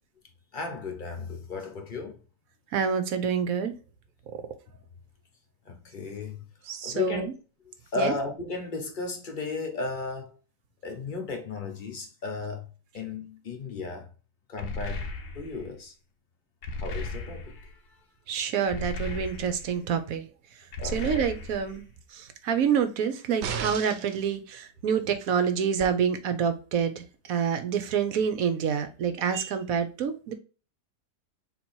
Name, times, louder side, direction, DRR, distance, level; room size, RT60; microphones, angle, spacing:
voice 1, 0.5-2.2 5.7-6.4 6.8-7.3 7.9-10.4 10.8-12.7 12.9-14.1 14.5-15.1 15.3-15.9 16.8-17.6 20.8-21.0, left 4 dB, 35° left, 1.0 m, -34 dB
voice 2, 2.7-3.7 4.3-4.4 6.7-7.3 8.0-8.1 18.3-20.3 20.9-21.9 22.1-27.0 27.3-30.3, right 7 dB, 65° right, 1.0 m, -27 dB
sound 1, 14.6-15.7 16.6-17.7 18.7-19.8 20.7-21.8, left 2 dB, 75° left, 1.3 m, -36 dB
sound 2, 23.4-24.2 25.8-25.9, right 7 dB, 90° right, 1.2 m, -33 dB
3.9 x 2.9 x 4.3 m
omnidirectional pair, 1.8 m